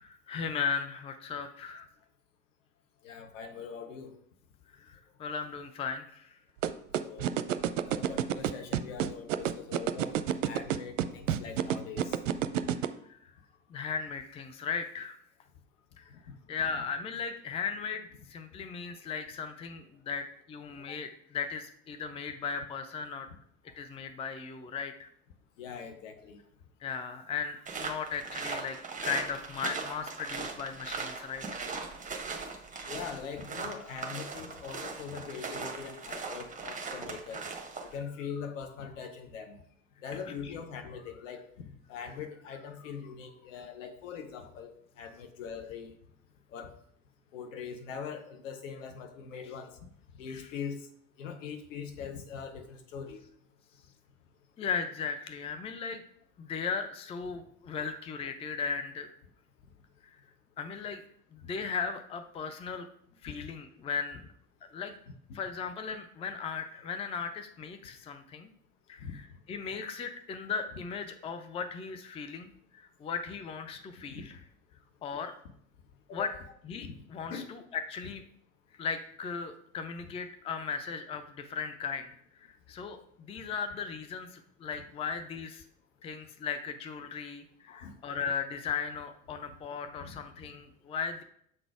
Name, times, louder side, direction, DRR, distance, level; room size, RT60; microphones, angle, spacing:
voice 1, 0.0-1.9 4.7-6.4 13.1-13.3 13.7-15.2 16.0-16.1 16.5-23.3 23.7-25.1 26.8-31.6 40.3-40.5 50.3-50.5 54.6-56.0 56.4-59.1 60.0-60.2 60.6-61.0 61.3-62.9 63.2-64.2 64.7-64.9 65.3-68.5 68.9-74.4 75.0-75.3 76.1-76.3 76.6-78.2 78.7-82.1 82.4-85.6 86.0-91.2, left 6 dB, 15° left, 8 dB, 0.5 m, -37 dB
voice 2, 3.0-4.1 7.0-7.3 7.9-10.2 10.4-12.2 16.1-16.2 25.6-26.4 32.3-37.5 37.8-39.6 40.0-41.4 41.9-45.9 46.5-46.7 47.3-49.7 50.2-50.8 51.2-53.2 63.3-63.5 69.0-69.1 74.1-74.3 76.1-76.3 76.8-77.0 77.3-77.5 87.7-87.9 90.0-90.2, left 6 dB, 65° left, 6 dB, 1.0 m, -42 dB
sound 1, 6.6-12.9, right 11 dB, 65° right, 0.6 m, -28 dB
sound 2, 27.7-38.0, right 4 dB, 20° right, 1.2 m, -39 dB
7.5 x 4.0 x 4.7 m, 0.67 s
figure-of-eight pair, 70°, 41 cm